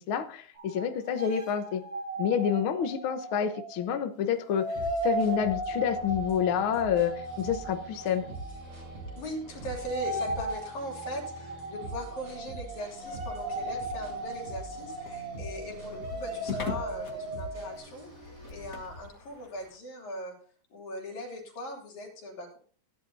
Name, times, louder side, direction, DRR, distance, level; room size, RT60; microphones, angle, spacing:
voice 1, 0.1-1.8 2.2-4.7 5.0-8.3, left 8 dB, 60° left, 7 dB, 1.5 m, -28 dB
sound 1, 0.6-4.0 4.4-17.8, right 2 dB, 45° right, 2.4 m, -37 dB
sound 2, 4.7-18.9, right 3 dB, 75° right, 6.6 m, -44 dB
voice 2, 9.2-20.4 20.7-22.6, left 1 dB, 75° left, 0 dB, 4.5 m, -40 dB
sound 3, 13.5-19.8, left 6 dB, 40° left, 1.3 m, -43 dB
17.0 x 10.5 x 2.7 m, 0.44 s
omnidirectional pair, 3.3 m